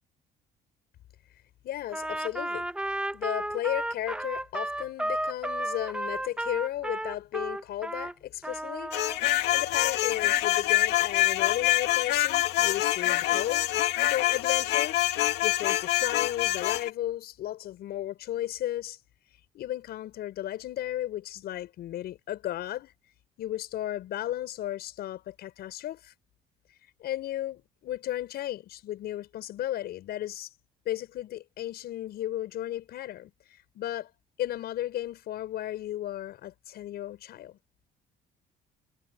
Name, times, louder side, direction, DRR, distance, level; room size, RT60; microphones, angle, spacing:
voice 1, 1.6-2.7 3.1-8.9 9.2-13.7 14.1-19.0 19.5-22.9 23.4-26.1 27.0-30.5 30.8-33.3 33.7-34.1 34.4-37.6, left 13 dB, 70° left, 7.6 m, -34 dB
Trumpet, 1.9-8.1 8.4-9.2, right 1 dB, 5° right, 1.6 m, -33 dB
sound 1, 8.9-16.9, left 15 dB, 85° left, 2.4 m, -25 dB
cardioid pair, 110°, 17 cm